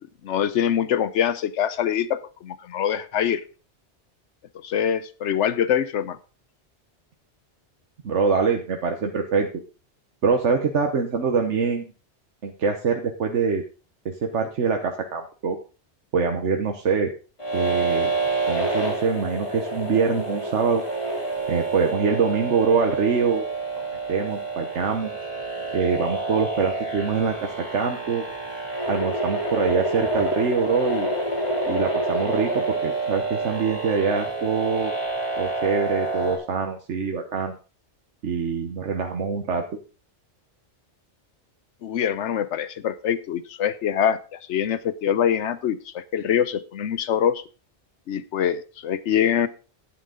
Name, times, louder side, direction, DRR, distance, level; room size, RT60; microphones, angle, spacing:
voice 1, 0.2-3.4 4.6-6.2 41.8-47.4 48.1-49.5, left 9 dB, 85° left, 14 dB, 1.0 m, -24 dB
voice 2, 8.0-9.6 10.2-11.9 12.4-13.6 14.0-15.6 16.1-17.1 17.5-18.1 18.4-20.8 21.5-23.4 24.1-25.3 25.7-28.2 28.9-31.1 31.7-34.9 35.4-37.5 38.2-39.6, right 5 dB, 85° right, 4 dB, 1.4 m, -24 dB
sound 1, 17.4-36.4, right 2 dB, 25° left, 4.5 m, -28 dB
11.0 x 9.5 x 3.8 m, 0.35 s
omnidirectional pair, 1.2 m